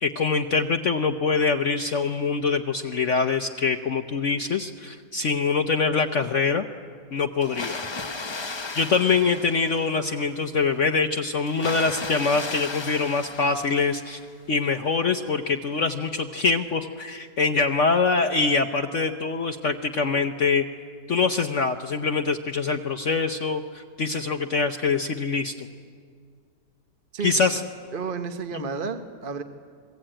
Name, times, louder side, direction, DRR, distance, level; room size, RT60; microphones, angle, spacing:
voice 1, 0.0-6.7 7.1-7.8 8.8-14.2 14.5-20.6 21.1-25.7 27.2-27.6 28.5-28.6, left 4 dB, 55° left, 6 dB, 1.0 m, -24 dB
Water, 7.4-10.2 11.5-14.3, left 3 dB, 40° left, 0.4 m, -35 dB
voice 2, 27.1-27.6 27.9-29.4, right 5 dB, 35° right, 6 dB, 1.1 m, -32 dB
27.0 x 21.5 x 8.9 m, 2.1 s
omnidirectional pair, 1.8 m